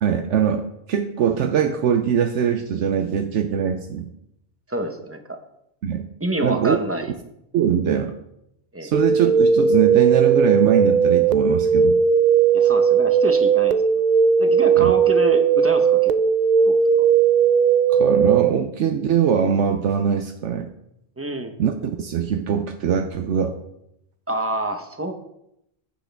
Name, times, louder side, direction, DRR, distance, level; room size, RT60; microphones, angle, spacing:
voice 1, 0.0-4.1 5.8-6.1 6.4-6.8 7.5-8.1 8.8-12.0 14.8-14.9 17.9-20.7 21.6-23.5, right 8 dB, 75° right, 6 dB, 1.0 m, -22 dB
voice 2, 4.7-5.4 6.2-7.1 8.7-8.9 12.5-14.1 14.4-16.1 16.7-16.8 21.2-21.5 24.3-25.1, right 1 dB, 15° right, 6 dB, 0.8 m, -27 dB
sound 1, 8.9-18.5, right 7 dB, 60° right, 0.5 m, -17 dB
15.0 x 6.2 x 3.5 m, 0.80 s
omnidirectional pair, 1.2 m